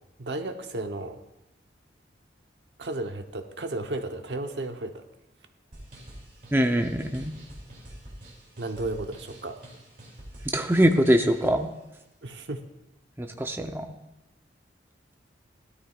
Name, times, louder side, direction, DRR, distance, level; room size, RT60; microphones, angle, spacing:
voice 1, 0.2-1.2 2.8-5.0 8.6-9.6 12.2-12.6, right 2 dB, 75° right, 6 dB, 1.0 m, -33 dB
sound 1, 5.7-11.6, right 1 dB, 45° right, 2.8 m, -46 dB
voice 2, 6.5-7.3 10.5-11.7 13.2-13.9, equal, 10° right, 4 dB, 0.7 m, -23 dB
17.5 x 12.5 x 2.4 m, 0.96 s
head